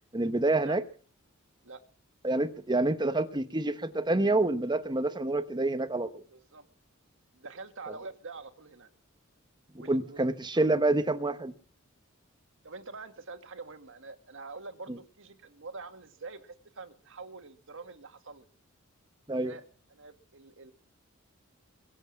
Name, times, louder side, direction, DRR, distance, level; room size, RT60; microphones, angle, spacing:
voice 1, 0.1-0.8 2.2-6.2 9.7-11.6 19.3-19.6, right 2 dB, 20° right, 1.0 m, -27 dB
voice 2, 6.3-6.7 7.3-8.9 9.8-10.3 10.6-10.7 12.6-18.5 19.4-19.6 19.9-20.7, right 4 dB, 65° right, 1.9 m, -45 dB
23.5 x 8.0 x 7.4 m
head